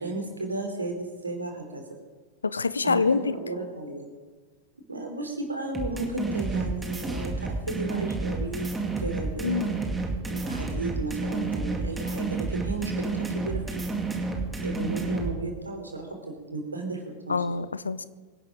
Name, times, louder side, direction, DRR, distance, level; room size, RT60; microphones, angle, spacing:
voice 1, 0.0-1.8 2.8-4.1 4.9-8.7 9.0-9.8 10.3-13.9 14.6-17.4, right 2 dB, 80° right, 3 dB, 3.3 m, -34 dB
voice 2, 2.4-3.2 9.4-9.7 17.3-18.0, left 4 dB, 75° left, 16 dB, 0.6 m, -25 dB
sound 1, 5.7-15.3, right 3 dB, 10° right, 2.5 m, -30 dB
25.0 x 11.0 x 3.8 m, 1.4 s
figure-of-eight pair, 90°, 0 cm